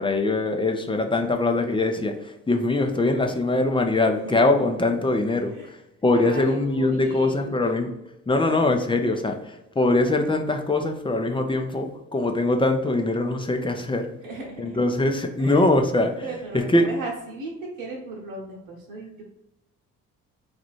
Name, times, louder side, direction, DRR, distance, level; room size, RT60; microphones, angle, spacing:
voice 1, 0.0-7.9 8.3-14.1 14.6-16.2 16.5-16.8, left 2 dB, 15° left, 4 dB, 0.7 m, -22 dB
voice 2, 4.1-5.1 5.5-5.7 6.1-7.5 10.0-10.2 14.2-14.8 15.4-15.7 16.2-19.2, right 2 dB, 55° right, -1 dB, 1.1 m, -37 dB
4.9 x 2.4 x 4.3 m, 0.92 s
figure-of-eight pair, 45°, 39 cm